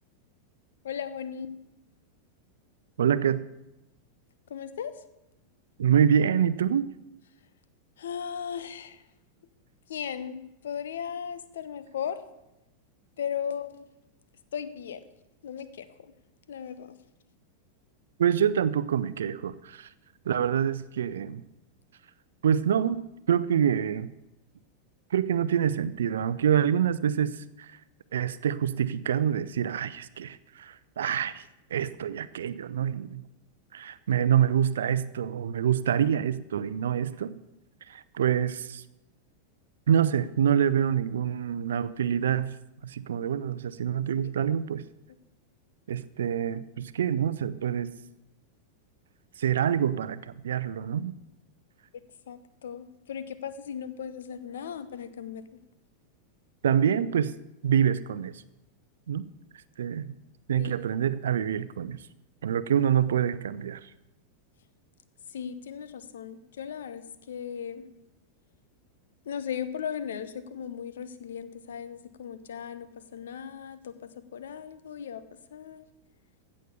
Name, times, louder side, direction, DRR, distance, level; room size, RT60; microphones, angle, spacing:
voice 1, 0.8-1.6 4.5-5.0 8.0-9.0 9.9-12.2 13.2-13.8 14.5-15.0 15.4-16.1 16.5-17.0 51.9-55.4 60.6-60.7 65.3-67.9 69.2-75.2 75.5-75.8, left 8 dB, 60° left, 13 dB, 0.9 m, -37 dB
voice 2, 3.0-3.4 5.8-6.9 18.2-19.9 20.3-21.4 22.4-24.1 25.1-27.7 28.1-31.4 31.7-33.2 33.7-37.3 37.9-38.8 39.9-42.6 42.8-44.8 45.9-47.9 49.4-51.1 56.6-57.3 57.6-58.4 59.1-59.3 59.8-60.1 60.5-62.0 62.4-63.8, right 9 dB, 65° right, 16 dB, 0.5 m, -26 dB
15.5 x 6.4 x 6.9 m, 0.92 s
figure-of-eight pair, 90°, 0 cm